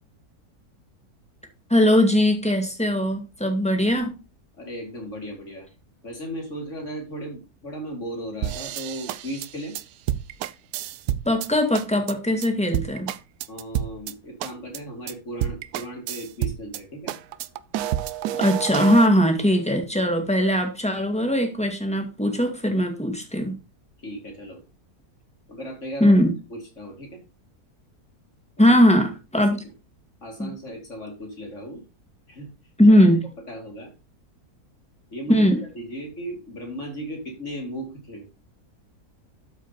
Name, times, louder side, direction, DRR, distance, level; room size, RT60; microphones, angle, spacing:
voice 1, 1.7-4.1 11.3-13.1 18.4-23.6 26.0-26.3 28.6-29.6 30.4-30.5 32.8-33.2 35.3-35.6, equal, 5° left, 4 dB, 1.9 m, -20 dB
voice 2, 4.6-5.7 6.0-9.8 13.5-17.1 24.0-24.6 25.5-26.2 26.5-27.2 29.3-29.5 30.2-31.8 32.3-32.5 32.9-33.0 33.5-33.9 35.1-38.2, right 1 dB, 50° left, 1 dB, 3.2 m, -36 dB
sound 1, 8.4-11.5 11.7-12.1 12.4-12.5 12.7-14.1 14.4-14.8 15.1-15.2 15.4-16.8 17.1-19.1, right 12 dB, 75° right, 1.1 m, -29 dB
12.5 x 5.1 x 4.2 m, 0.29 s
omnidirectional pair, 1.6 m